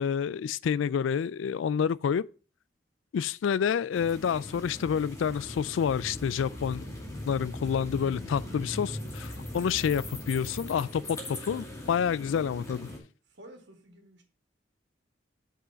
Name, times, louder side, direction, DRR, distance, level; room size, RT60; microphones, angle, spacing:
voice 1, 0.0-2.2 3.1-6.9 7.3-12.9, left 7 dB, 85° left, 0.3 m, -28 dB
sound 1, 3.9-13.0, left 1 dB, 15° left, 2.3 m, -40 dB
voice 2, 13.2-14.2, right 1 dB, 65° right, 2.1 m, -51 dB
6.2 x 5.5 x 6.9 m
head